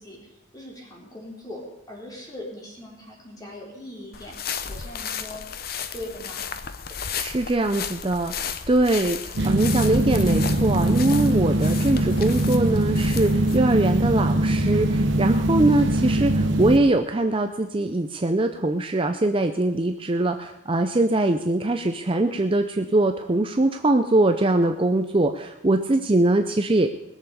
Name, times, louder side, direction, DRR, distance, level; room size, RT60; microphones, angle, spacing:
voice 1, 0.0-4.4 4.7-6.4, left 1 dB, 20° left, -3 dB, 3.7 m, -40 dB
sound 1, 4.1-13.6, left 7 dB, 45° left, 0.7 m, -34 dB
voice 2, 7.2-26.9, right 2 dB, 25° right, 6 dB, 0.5 m, -22 dB
sound 2, 9.4-16.8, right 1 dB, 60° right, 1.0 m, -22 dB
20.5 x 7.0 x 6.8 m, 0.88 s
head